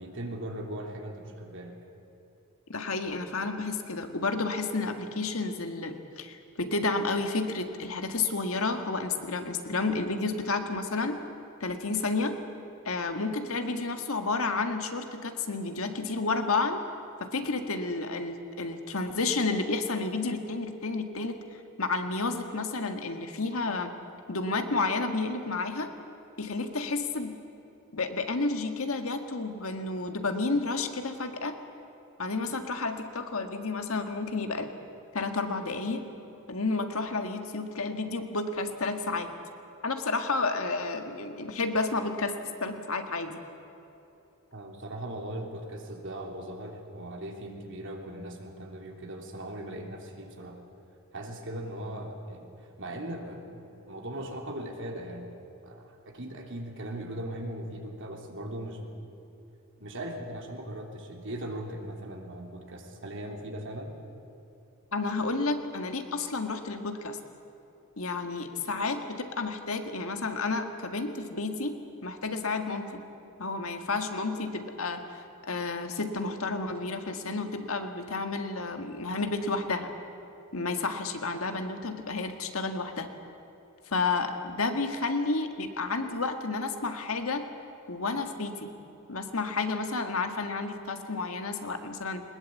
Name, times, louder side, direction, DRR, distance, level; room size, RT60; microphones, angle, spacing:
voice 1, 0.0-1.7 44.5-50.6 51.1-55.3 55.6-59.0 59.8-63.9, right 1 dB, 60° right, 2 dB, 3.2 m, -39 dB
voice 2, 2.7-11.2 11.6-12.3 12.8-16.8 17.2-21.4 21.8-23.9 24.3-25.9 26.4-27.3 27.9-31.6 32.2-34.7 35.1-36.0 36.5-39.3 39.8-42.3 42.6-43.4 64.9-67.2 68.0-71.7 72.0-73.0 73.4-75.0 75.4-79.9 80.5-83.1 83.9-87.4 87.9-88.7 89.1-92.2, left 3 dB, 70° left, 6 dB, 1.8 m, -31 dB
21.0 x 20.5 x 8.4 m, 2.9 s
head